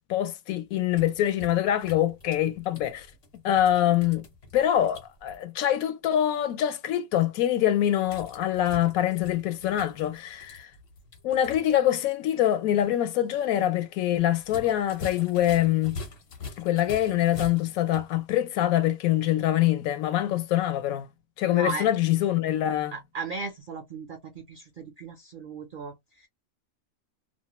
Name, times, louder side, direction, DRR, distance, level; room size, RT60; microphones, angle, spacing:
voice 1, 0.1-3.1 3.4-4.2 4.5-10.7 11.2-16.0 16.6-21.1 21.4-23.0, left 12 dB, 80° left, 1.0 m, -24 dB
sound 1, 0.7-5.4 8.0-11.8 12.1-12.2 14.4-18.1, left 3 dB, 50° left, 1.0 m, -44 dB
voice 2, 21.5-21.9 22.9-26.3, right 4 dB, 65° right, 0.5 m, -36 dB
2.5 x 2.1 x 2.9 m
omnidirectional pair, 1.5 m